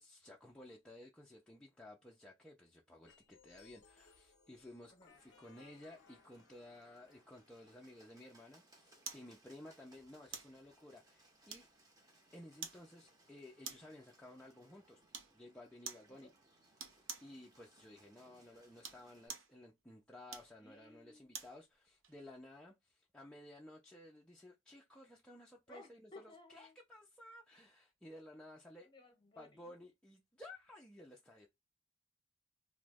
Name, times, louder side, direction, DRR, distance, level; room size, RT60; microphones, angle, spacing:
voice 1, 0.0-11.7 12.3-15.0 15.3-16.3 16.8-16.9 17.2-28.9 29.4-31.5, left 1 dB, 5° left, 0.4 m, -56 dB
sound 1, 3.1-8.1, left 5 dB, 60° left, 0.5 m, -67 dB
Bird, 5.1-19.3, right 1 dB, 20° right, 0.8 m, -69 dB
sound 2, 9.1-9.3 10.3-10.6 11.5-11.9 12.6-12.9 13.6-14.0 15.1-15.4 15.9-16.1 16.8-17.3 18.7-19.5 20.3-21.6 22.0-22.2, right 6 dB, 75° right, 0.7 m, -48 dB
voice 2, 20.6-21.3 25.7-26.8 28.8-29.7, left 2 dB, 25° left, 0.9 m, -59 dB
3.0 x 2.0 x 3.4 m
head